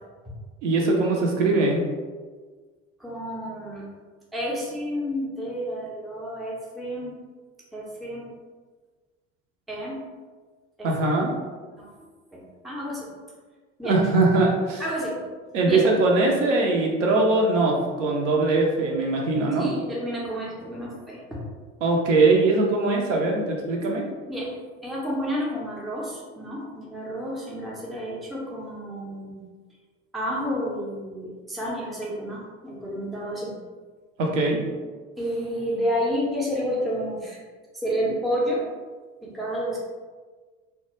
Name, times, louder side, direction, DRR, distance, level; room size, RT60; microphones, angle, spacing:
voice 1, 0.6-1.8 10.8-11.3 13.8-14.8 15.5-19.7 21.8-24.0 34.2-34.6, right 3 dB, 70° right, -1 dB, 0.6 m, -21 dB
voice 2, 3.0-3.9 4.3-7.1 7.7-8.3 9.7-10.0 10.8-11.2 11.7-13.1 13.8-14.0 14.8-15.2 15.6-15.8 19.6-21.5 24.3-24.5 24.8-29.4 30.1-33.6 35.2-37.4 37.7-38.7 39.2-39.8, equal, ahead, -5 dB, 0.4 m, -30 dB
2.2 x 2.1 x 2.9 m, 1.4 s
figure-of-eight pair, 65°, 38 cm